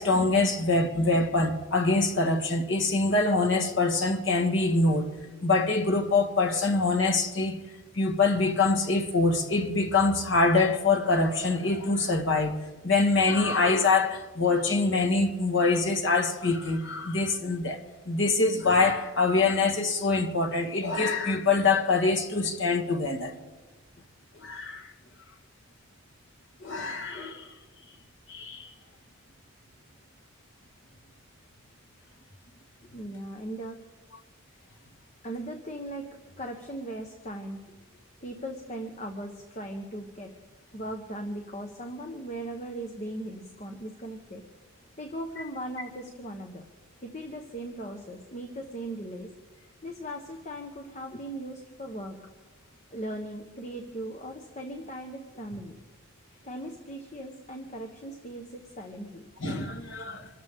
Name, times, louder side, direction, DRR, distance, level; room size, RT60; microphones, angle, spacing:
voice 1, 0.0-5.1 5.4-7.6 7.9-12.6 12.8-23.3 24.4-24.9 26.6-27.5 28.3-28.7 59.4-60.3, left 3 dB, 55° left, 1.7 m, -24 dB
voice 2, 32.9-33.8 35.2-37.8 38.2-40.3 40.7-44.4 45.0-46.7 47.0-49.3 49.8-52.2 52.9-55.8 56.4-59.2, right 1 dB, 30° left, 1.2 m, -38 dB
26.5 x 13.5 x 3.7 m
head